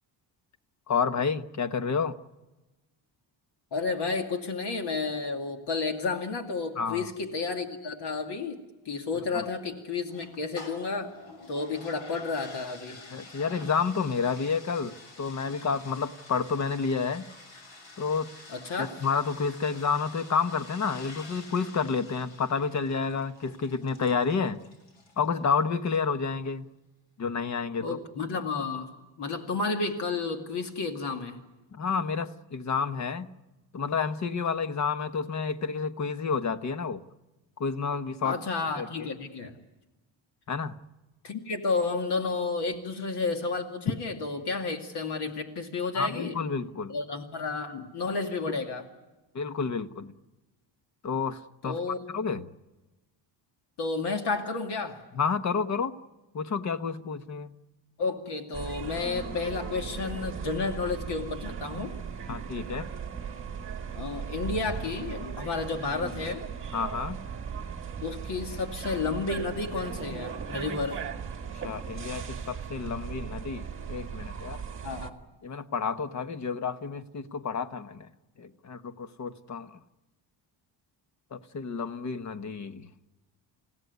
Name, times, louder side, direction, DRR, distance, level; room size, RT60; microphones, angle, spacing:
voice 1, 0.9-2.2 6.8-7.1 9.3-9.4 13.1-17.3 18.0-18.3 18.8-24.6 25.2-26.7 27.2-27.9 31.7-33.3 33.7-37.0 37.6-38.4 38.8-38.9 40.5-40.8 45.9-46.9 48.5-48.6 49.3-50.1 51.0-51.8 52.1-52.4 55.1-56.0 56.3-57.5 62.3-62.9 66.7-67.2 71.6-74.6 75.4-78.1 78.4-79.8 81.3-82.9, left 5 dB, 35° left, 1.2 m, -30 dB
voice 2, 3.7-8.6 8.9-11.1 11.5-13.0 18.5-18.9 27.8-28.9 29.2-31.4 38.2-39.5 41.2-46.4 46.9-48.9 51.6-52.0 53.8-55.0 58.0-61.9 63.9-66.5 68.0-71.0 74.8-75.1, left 4 dB, 60° left, 2.4 m, -31 dB
sound 1, 10.1-25.3, left 3 dB, 80° left, 6.6 m, -49 dB
sound 2, 58.5-75.1, right 6 dB, 25° right, 1.5 m, -37 dB
30.0 x 16.5 x 9.5 m
cardioid pair, 175°, 45 cm